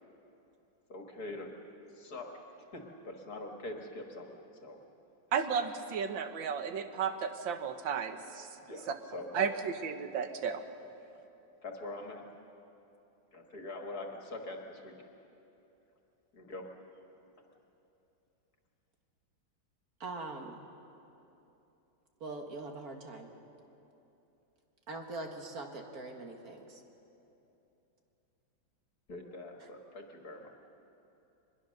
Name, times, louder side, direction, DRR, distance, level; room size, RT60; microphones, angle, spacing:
voice 1, 0.9-1.5 1.9-2.3 2.6-4.3 4.6-4.8 5.5-5.6 8.7-9.5 11.6-12.2 13.3-14.9 16.3-16.7 29.1-30.5, left 2 dB, 55° left, 2 dB, 2.2 m, -43 dB
voice 2, 5.3-8.5 9.3-10.6, right 6 dB, 80° right, 8 dB, 1.8 m, -33 dB
voice 3, 20.0-20.7 22.2-23.3 24.9-26.8 29.6-29.7, right 2 dB, 50° right, 3 dB, 2.1 m, -42 dB
23.5 x 21.0 x 6.6 m, 2.9 s
omnidirectional pair, 2.0 m